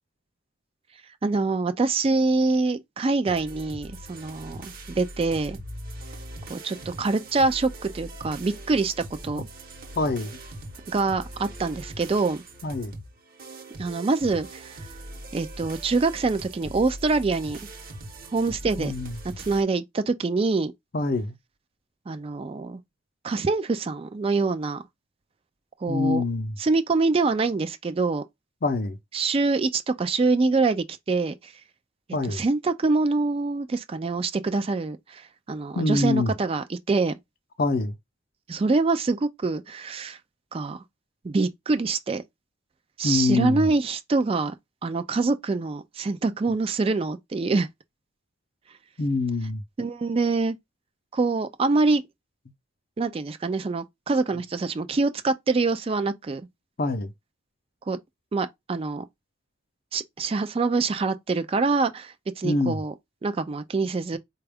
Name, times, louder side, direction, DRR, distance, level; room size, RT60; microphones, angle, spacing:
voice 1, 1.2-5.6 6.5-8.9 9.2-9.5 10.9-12.4 13.8-14.8 15.3-17.6 18.3-18.9 19.5-20.7 22.1-22.8 23.2-24.8 25.8-26.2 26.6-28.2 29.1-31.5 32.3-37.1 38.5-40.2 40.5-40.8 41.2-42.2 43.0-44.5 44.8-47.7 49.8-50.6 51.1-52.1 53.0-56.4 57.9-58.0 58.3-59.0 59.9-62.9 63.2-64.2, right 3 dB, 30° right, 0.3 m, -25 dB
sound 1, 3.3-19.6, right 1 dB, 50° right, 1.0 m, -41 dB
voice 2, 10.0-10.4 12.6-12.9 18.8-19.2 20.9-21.4 25.9-26.6 28.6-29.0 32.1-32.4 35.8-36.3 37.6-38.0 43.0-43.7 49.0-49.6 56.8-57.1 62.4-62.8, left 2 dB, 50° left, 0.6 m, -25 dB
4.2 x 2.3 x 3.4 m
head